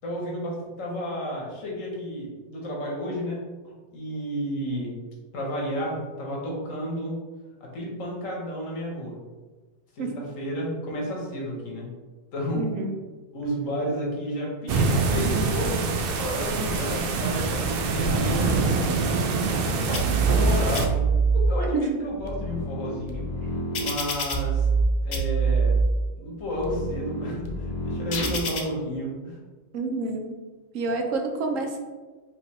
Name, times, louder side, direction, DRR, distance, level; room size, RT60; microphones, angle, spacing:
voice 1, 0.0-5.0 5.3-7.2 7.6-9.2 9.9-11.9 12.3-12.7 13.3-19.1 19.5-23.3 23.7-24.7 25.0-25.8 26.2-29.4, equal, 90° left, -2 dB, 1.5 m, -32 dB
voice 2, 12.5-12.9 21.7-21.9 29.7-30.4 30.7-31.8, right 3 dB, 85° right, 3 dB, 1.1 m, -28 dB
sound 1, 14.7-20.9, right 4 dB, 60° right, 0.6 m, -25 dB
sound 2, 19.9-20.5 20.7-21.5 22.0-24.8 25.1-25.8 26.4-28.6, right 4 dB, 50° left, 0.6 m, -26 dB
5.0 x 3.0 x 3.1 m, 1.3 s
omnidirectional pair, 1.3 m